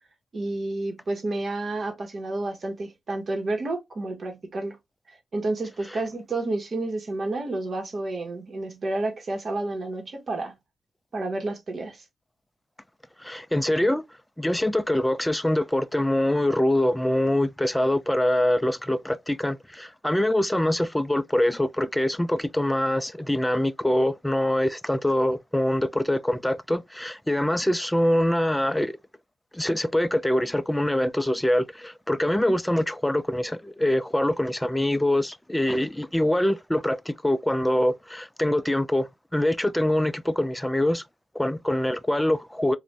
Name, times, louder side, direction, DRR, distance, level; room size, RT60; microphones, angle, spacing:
voice 1, 0.3-4.8 5.1-10.6 11.1-12.0, right 2 dB, 55° right, 1.0 m, -30 dB
voice 2, 13.2-14.0 14.4-29.0 29.5-41.0 41.3-42.8, left 1 dB, 10° left, 0.3 m, -24 dB
2.4 x 2.1 x 3.2 m
supercardioid pair, 40°, 0 cm